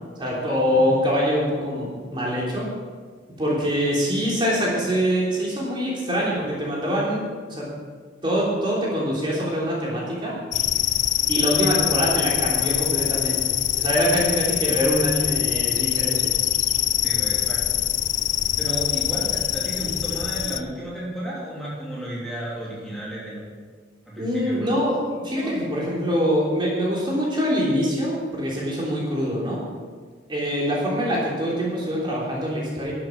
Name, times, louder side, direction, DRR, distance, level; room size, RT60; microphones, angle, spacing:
voice 1, 0.2-2.6 3.4-7.7 8.2-10.3 11.3-16.2 24.2-29.6 30.3-32.9, equal, 25° right, -5 dB, 3.3 m, -24 dB
sound 1, 10.5-20.6, left 13 dB, 45° left, 0.4 m, -24 dB
voice 2, 17.0-17.8 18.6-23.4 24.1-24.7 25.4-25.5, right 1 dB, ahead, -7 dB, 3.0 m, -33 dB
12.0 x 7.7 x 7.4 m, 1.6 s
head